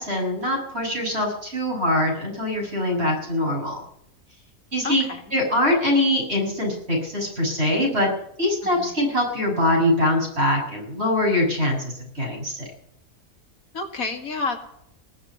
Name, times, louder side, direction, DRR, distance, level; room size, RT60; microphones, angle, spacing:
voice 1, 0.0-3.8 4.7-5.0 5.3-8.1 8.4-12.7, left 1 dB, 50° right, 0 dB, 7.4 m, -23 dB
voice 2, 4.8-5.2 8.6-8.9 13.7-14.6, left 4 dB, 80° left, 6 dB, 2.5 m, -30 dB
20.0 x 7.7 x 8.5 m, 0.75 s
omnidirectional pair, 1.4 m